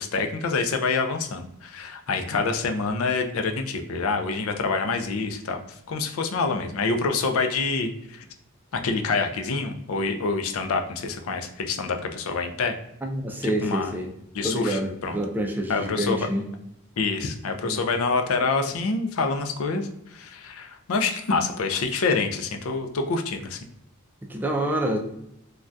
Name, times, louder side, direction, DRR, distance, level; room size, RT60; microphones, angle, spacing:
voice 1, 0.0-5.6 5.9-8.2 8.7-12.8 13.4-13.9 14.3-15.2 15.7-16.2 17.0-23.6, left 4 dB, 85° left, 5 dB, 0.4 m, -26 dB
voice 2, 13.0-14.1 14.4-16.4 17.6-17.8 24.2-25.0, right 1 dB, 10° right, 2 dB, 0.3 m, -27 dB
3.4 x 2.2 x 2.5 m, 0.77 s
head